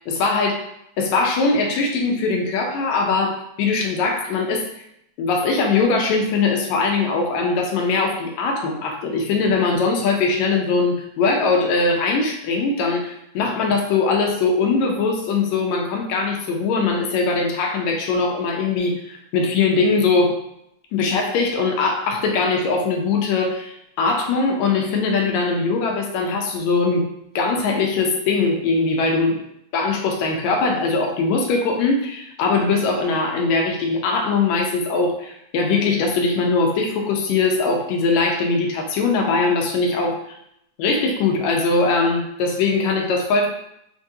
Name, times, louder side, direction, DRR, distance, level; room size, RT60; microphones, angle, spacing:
voice 1, 0.1-0.6 1.0-4.6 5.2-20.4 20.9-27.1 27.4-29.4 29.7-40.2 40.8-43.5, left 4 dB, 80° left, 1 dB, 1.9 m, -21 dB
5.9 x 2.4 x 2.7 m, 0.75 s
omnidirectional pair, 3.3 m